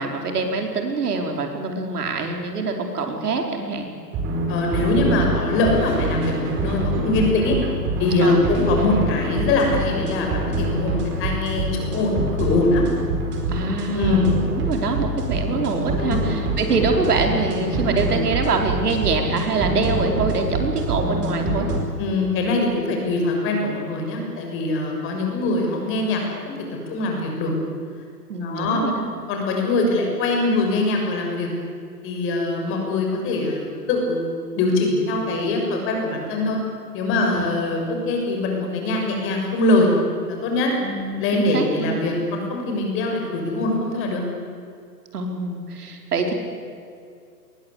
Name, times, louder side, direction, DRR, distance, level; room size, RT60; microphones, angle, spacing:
voice 1, 0.0-3.9 8.2-8.5 13.5-21.7 28.3-29.1 37.1-37.6 40.8-42.0 45.1-46.3, right 3 dB, 65° right, 3 dB, 4.7 m, -25 dB
sound 1, 4.1-21.8, right 1 dB, 25° right, 5.0 m, -25 dB
voice 2, 4.5-7.6 8.0-12.8 13.9-14.3 16.0-16.2 22.0-26.6 26.9-27.5 28.4-28.8 29.3-31.5 32.0-36.6 36.9-39.9 40.4-40.7 41.2-44.2, left 2 dB, 25° left, 1 dB, 6.7 m, -23 dB
27.0 x 22.0 x 8.3 m, 2.3 s
hypercardioid pair, 135°, 49 cm